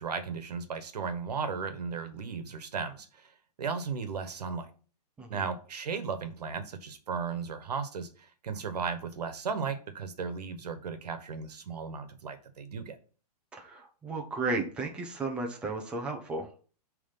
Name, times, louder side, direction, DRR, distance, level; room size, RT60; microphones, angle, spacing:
voice 1, 0.0-3.3 3.6-4.7 5.3-13.0, right 5 dB, 75° right, 9 dB, 1.3 m, -35 dB
voice 2, 13.5-16.5, right 3 dB, 5° right, 1 dB, 0.7 m, -34 dB
9.0 x 3.4 x 5.6 m, 0.39 s
hypercardioid pair, 170°, 20 cm